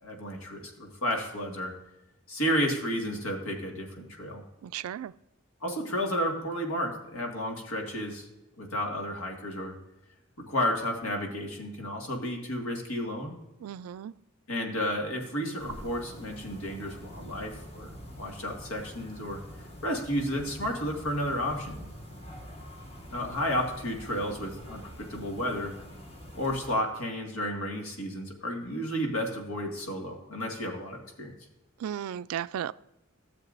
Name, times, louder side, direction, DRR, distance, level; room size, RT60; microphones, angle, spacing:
voice 1, 0.0-1.7 2.3-4.4 5.6-8.3 8.6-9.7 10.4-13.3 14.5-19.4 19.8-21.8 23.1-25.7 26.3-31.3, equal, 80° left, 1.9 m, -32 dB
voice 2, 4.6-5.1 13.6-14.1 31.8-32.7, right 9 dB, 80° right, 0.3 m, -35 dB
sound 1, 15.6-26.7, equal, 30° left, 1.4 m, -45 dB
13.5 x 7.2 x 2.6 m
head